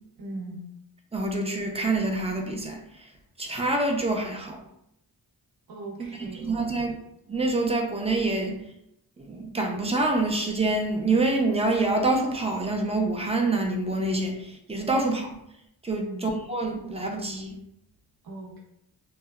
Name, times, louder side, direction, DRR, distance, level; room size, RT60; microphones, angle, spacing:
voice 1, 0.2-0.7 5.7-7.0 15.9-16.3 18.2-18.6, right 2 dB, 60° right, -2 dB, 0.8 m, -39 dB
voice 2, 1.1-2.8 3.4-4.6 6.1-7.0 7.3-8.6 9.2-15.3 15.8-17.6, right 2 dB, 15° right, 1 dB, 0.4 m, -26 dB
2.7 x 2.1 x 2.3 m, 0.78 s
cardioid pair, 75°, 39 cm